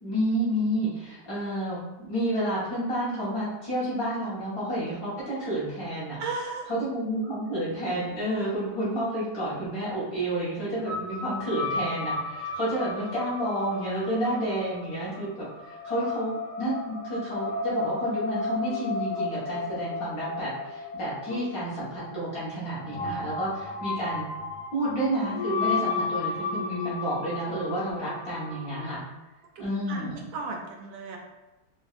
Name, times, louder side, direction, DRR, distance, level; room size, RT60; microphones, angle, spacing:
voice 1, 0.0-6.2 6.7-24.3 24.7-29.0 29.6-30.2, right 1 dB, 45° left, -10 dB, 1.5 m, -30 dB
voice 2, 6.2-6.7 29.6-31.2, right 3 dB, 75° right, 1 dB, 1.2 m, -35 dB
sound 1, 10.9-29.0, left 3 dB, 80° left, 1.4 m, -34 dB
4.2 x 2.4 x 2.4 m, 1.0 s
omnidirectional pair, 2.3 m